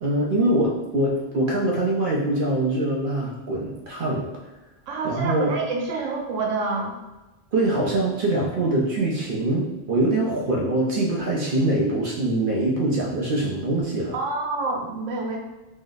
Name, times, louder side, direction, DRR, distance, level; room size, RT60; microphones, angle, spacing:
voice 1, 0.0-4.3 5.0-5.5 7.5-14.2, right 1 dB, 55° right, -3 dB, 0.7 m, -23 dB
voice 2, 4.9-6.9 14.1-15.4, right 3 dB, 90° right, 0 dB, 1.0 m, -27 dB
3.1 x 2.0 x 3.9 m, 1.1 s
omnidirectional pair, 1.2 m